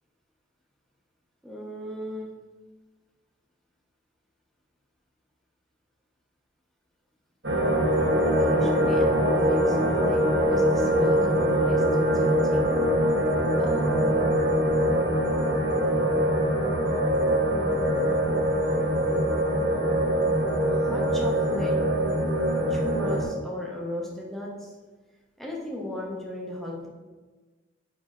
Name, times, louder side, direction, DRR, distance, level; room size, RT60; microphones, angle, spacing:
voice 1, 1.4-2.3 8.4-12.7 13.6-14.3 20.7-21.8 22.7-24.7 25.4-26.9, left 1 dB, ahead, -3 dB, 0.9 m, -36 dB
sound 1, 7.4-23.2, equal, 60° right, 1.3 m, -23 dB
5.3 x 4.9 x 3.7 m, 1.3 s
head